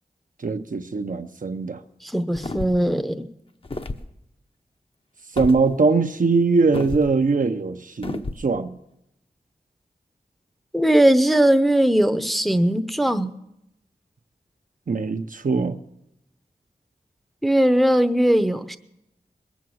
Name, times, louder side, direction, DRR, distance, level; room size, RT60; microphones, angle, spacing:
voice 1, 0.4-1.8 5.4-8.7 14.9-15.8, right 4 dB, 55° right, 0.8 m, -21 dB
voice 2, 2.0-3.3 10.7-13.3 17.4-18.8, right 1 dB, ahead, 0.8 m, -19 dB
sound 1, 2.3-2.9 3.6-4.1 5.4-5.6 6.7-7.1 8.0-8.4, left 2 dB, 35° left, 0.8 m, -31 dB
21.0 x 7.2 x 7.8 m
wide cardioid pair, 55°, 16 cm